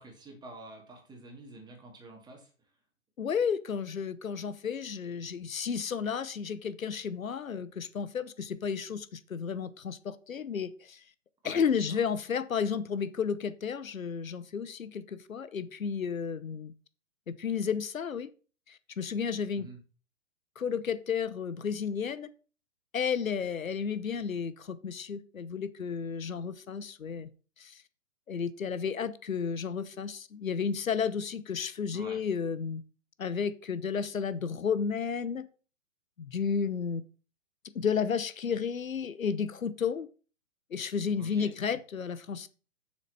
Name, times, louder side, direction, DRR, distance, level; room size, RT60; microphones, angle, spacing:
voice 1, 0.0-2.7 11.4-12.0 19.5-19.8 31.9-32.2 41.2-41.5, right 2 dB, 10° right, 1 dB, 2.5 m, -48 dB
voice 2, 3.2-11.0 11.4-16.7 17.3-18.3 18.7-19.7 20.6-22.3 22.9-27.3 27.6-27.8 28.3-32.8 33.2-35.5 36.2-37.0 37.7-40.1 40.7-42.5, left 6 dB, 85° left, 15 dB, 0.9 m, -32 dB
7.4 x 6.5 x 5.5 m, 0.38 s
figure-of-eight pair, 130°, 40 cm